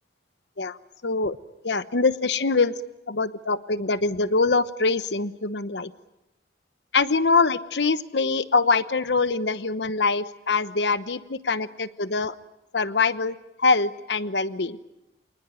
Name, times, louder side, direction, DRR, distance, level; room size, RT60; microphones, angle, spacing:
voice 1, 1.0-1.4 1.6-2.8 3.1-5.9 6.9-12.3 12.7-14.8, left 4 dB, 85° left, 13 dB, 1.1 m, -24 dB
27.5 x 19.5 x 9.1 m, 0.94 s
head